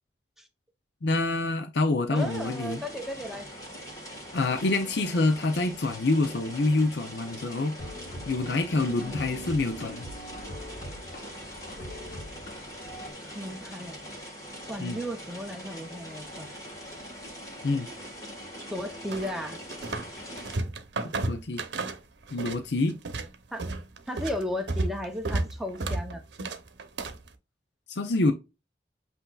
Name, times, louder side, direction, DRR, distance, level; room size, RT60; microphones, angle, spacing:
voice 1, 1.0-2.8 4.3-7.7 8.3-10.1 14.8-15.0 17.6-17.9 21.3-21.6 22.3-22.9 27.9-28.3, left 2 dB, 80° left, 0.6 m, -26 dB
sound 1, 2.1-20.6, equal, 20° left, 1.4 m, -42 dB
voice 2, 2.1-3.5 9.0-9.3 13.2-14.0 14.6-16.5 18.7-19.6 23.5-23.6 24.1-26.2, left 1 dB, ahead, 0.7 m, -35 dB
sound 2, 7.8-13.1, equal, 50° left, 1.3 m, -42 dB
sound 3, 19.1-20.1 20.4-22.6 22.9-27.3, right 2 dB, 85° right, 0.7 m, -32 dB
7.9 x 2.7 x 2.3 m
head